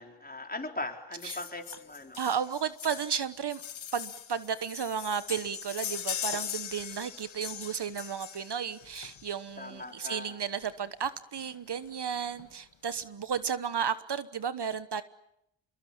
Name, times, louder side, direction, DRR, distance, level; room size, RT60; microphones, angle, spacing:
voice 1, 0.0-2.2 9.6-10.4, left 2 dB, 20° left, 4.4 m, -39 dB
sound 1, 1.2-9.5 10.6-10.7 11.0-11.1 11.4-11.5 11.9-12.5 13.0-13.1, left 9 dB, 80° left, 1.7 m, -40 dB
voice 2, 2.2-3.6 3.9-15.0, right 7 dB, 60° right, 1.2 m, -33 dB
27.0 x 22.5 x 8.7 m
cardioid pair, 65°, 46 cm